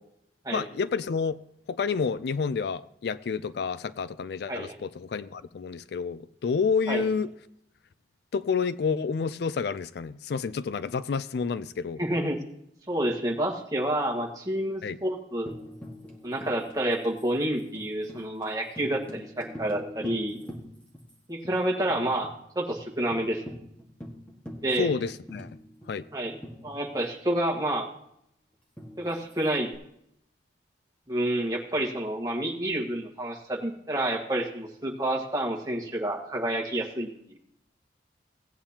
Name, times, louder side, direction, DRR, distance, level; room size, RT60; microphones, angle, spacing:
voice 1, 0.5-1.4 1.7-7.3 8.3-12.0 14.8-15.0 24.8-25.5 25.9-26.1, left 5 dB, 60° left, 15 dB, 0.3 m, -29 dB
voice 2, 12.0-12.4 12.9-15.6 16.2-20.4 21.3-22.3 22.5-23.4 24.6-24.9 26.1-26.4 26.6-27.9 29.0-29.7 31.1-37.4, right 1 dB, 20° right, -1 dB, 1.5 m, -29 dB
Tambourine, 15.5-21.1 21.4-21.5 21.9-22.4 22.7-22.8 23.1-27.2 28.8-29.7, left 1 dB, 5° left, 1.5 m, -44 dB
17.0 x 8.8 x 2.8 m, 0.73 s
head